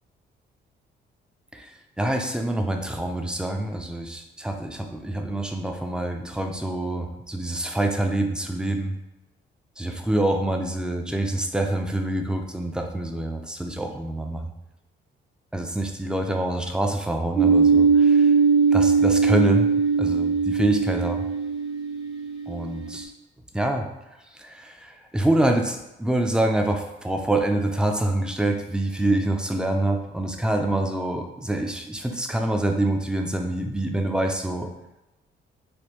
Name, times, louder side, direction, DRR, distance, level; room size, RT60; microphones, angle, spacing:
voice 1, 2.0-9.0 9.8-14.5 15.5-18.3 18.7-19.7 20.0-21.2 22.5-23.1 23.5-23.9 24.4-34.7, right 1 dB, 5° right, 3 dB, 0.4 m, -26 dB
sound 1, 17.4-22.9, right 5 dB, 85° right, 1.1 m, -20 dB
3.4 x 2.2 x 3.0 m, 0.94 s
cardioid pair, 90°, 20 cm